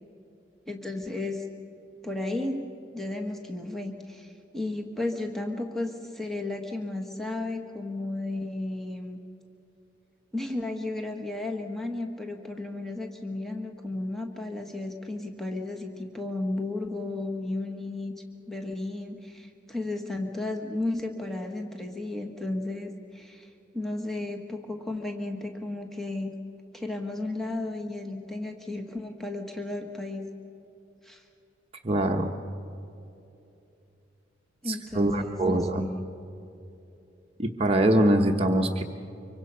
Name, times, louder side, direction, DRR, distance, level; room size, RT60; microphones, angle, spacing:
voice 1, 0.7-1.4 2.0-2.6 2.9-9.2 10.3-18.1 18.5-26.3 26.7-30.3 31.0-31.2 34.6-36.1, left 2 dB, ahead, 2 dB, 1.4 m, -34 dB
voice 2, 31.8-32.3 34.7-35.9 37.4-38.8, right 1 dB, 30° right, 2 dB, 0.9 m, -23 dB
25.0 x 24.0 x 5.5 m, 2.8 s
head